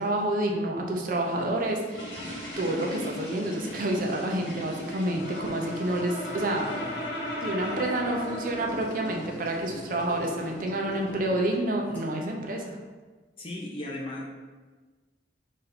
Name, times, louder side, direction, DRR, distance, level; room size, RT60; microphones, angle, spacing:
voice 1, 0.0-2.2 2.6-6.7 7.4-12.8, right 1 dB, 50° right, 1 dB, 0.6 m, -29 dB
sound 1, 1.2-11.2, left 1 dB, 90° left, 1.4 m, -43 dB
sound 2, 2.5-12.0, right 1 dB, 10° left, 1.2 m, -43 dB
Brass instrument, 4.9-9.1, left 1 dB, 65° left, 0.8 m, -35 dB
voice 2, 6.4-7.3 9.4-9.5 13.4-14.3, left 1 dB, 30° left, -3 dB, 0.4 m, -38 dB
4.1 x 2.6 x 4.1 m, 1.3 s
head